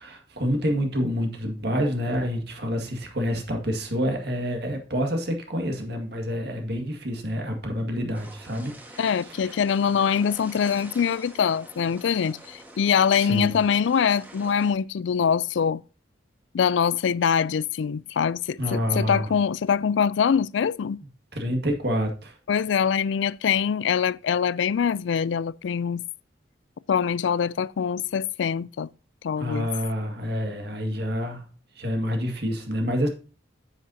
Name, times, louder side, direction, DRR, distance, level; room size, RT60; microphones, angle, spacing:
voice 1, 0.0-9.1 9.4-9.6 13.2-13.5 18.6-19.3 21.3-22.4 29.4-31.4 31.8-33.1, equal, 55° right, 1.9 m, -28 dB
sound 1, 8.1-14.7, right 1 dB, 10° right, 1.5 m, -46 dB
voice 2, 9.0-15.8 16.5-21.0 22.5-26.0 26.9-28.9 29.2-29.7, left 7 dB, 70° left, 0.4 m, -24 dB
9.6 x 8.2 x 2.8 m
head